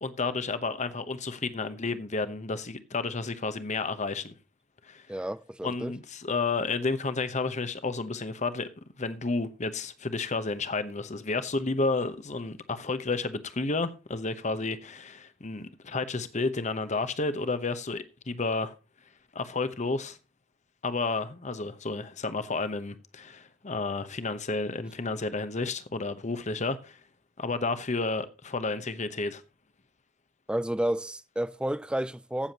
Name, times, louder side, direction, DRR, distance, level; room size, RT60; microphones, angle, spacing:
voice 1, 0.0-4.3 4.8-5.1 5.6-8.7 9.0-18.7 19.3-20.2 20.8-27.0 27.4-29.4, left 3 dB, 40° left, 1.0 m, -31 dB
voice 2, 5.1-5.9 30.5-32.5, right 1 dB, 5° right, 0.4 m, -31 dB
15.5 x 7.1 x 2.9 m
head